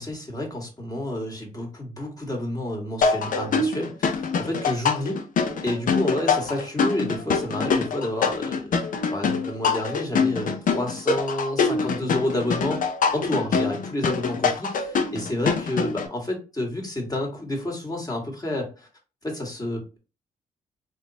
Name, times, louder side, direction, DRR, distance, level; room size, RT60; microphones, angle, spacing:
voice 1, 0.0-5.2 5.6-8.7 9.1-18.9 19.2-20.0, left 1 dB, 20° left, 1 dB, 1.7 m, -30 dB
sound 1, 3.0-16.1, left 5 dB, 55° left, 0.6 m, -24 dB
3.5 x 3.0 x 2.8 m, 0.32 s
supercardioid pair, 50°, 16 cm